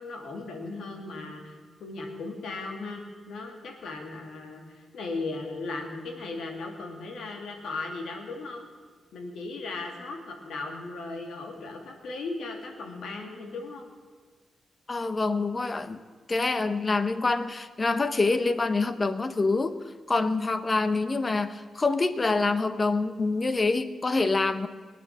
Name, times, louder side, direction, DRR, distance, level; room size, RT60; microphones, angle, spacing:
voice 1, 0.0-1.5 1.8-8.7 9.1-13.9, left 3 dB, 80° left, 2 dB, 2.6 m, -37 dB
voice 2, 14.9-16.0 16.3-19.7 20.1-24.7, left 3 dB, 25° left, 12 dB, 0.7 m, -26 dB
19.5 x 9.4 x 7.6 m, 1.5 s
wide cardioid pair, 155°, 0 cm